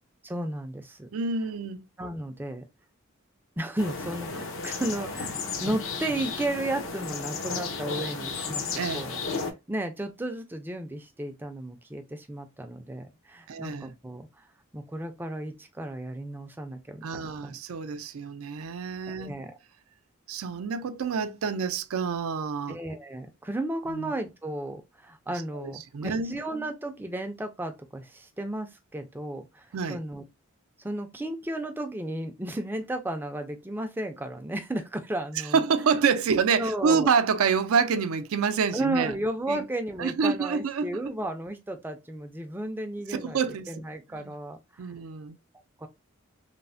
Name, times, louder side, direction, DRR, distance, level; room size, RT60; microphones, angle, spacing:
voice 1, 0.2-1.1 2.0-2.6 3.6-8.6 8.9-14.5 14.7-17.6 19.1-19.6 22.7-30.2 30.8-35.6 36.6-37.1 38.7-43.4 43.7-44.9 45.8-45.9, right 1 dB, 10° right, 0.3 m, -34 dB
voice 2, 1.1-1.8 8.8-9.0 13.5-13.9 17.0-19.4 20.3-22.8 23.9-24.1 25.6-26.4 29.7-30.0 35.5-39.1 39.5-39.6 40.0-41.1 43.1-43.7 44.2-44.3 44.8-45.4, right 5 dB, 80° right, 0.4 m, -27 dB
sound 1, 3.8-9.5, left 4 dB, 65° left, 0.6 m, -33 dB
3.2 x 2.0 x 2.5 m
head